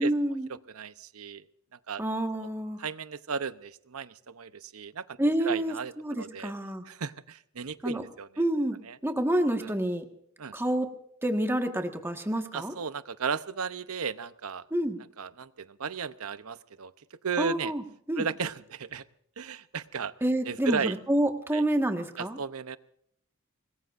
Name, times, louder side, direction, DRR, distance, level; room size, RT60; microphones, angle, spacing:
voice 1, 0.0-0.5 2.0-2.8 5.2-6.8 7.8-8.0 8.4-8.8 9.0-10.0 10.5-10.9 11.2-12.7 14.7-15.0 17.4-17.8 18.1-18.2 20.2-22.4, right 1 dB, 10° right, 4 dB, 1.6 m, -28 dB
voice 2, 0.7-1.4 1.9-2.0 2.8-5.2 5.4-6.5 6.9-8.3 8.8-9.0 9.6-9.7 10.4-10.5 12.5-14.6 15.2-16.9 17.2-17.7 18.2-19.0 19.4-20.1 20.5-20.9 21.5-21.6 22.2-22.8, right 6 dB, 85° right, 13 dB, 0.8 m, -35 dB
25.5 x 20.5 x 2.6 m, 0.71 s
head